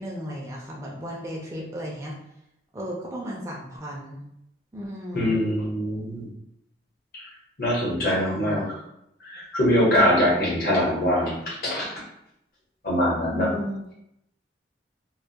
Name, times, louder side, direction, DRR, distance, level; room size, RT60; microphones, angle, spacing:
voice 1, 0.0-2.2 2.7-4.3 4.7-5.4 8.1-8.6 13.3-13.8, equal, 15° right, -3 dB, 0.3 m, -34 dB
voice 2, 5.1-6.3 7.1-7.2 7.6-8.6 9.2-11.9 12.8-13.5, equal, 55° left, -6 dB, 0.9 m, -23 dB
2.2 x 2.0 x 2.7 m, 0.81 s
head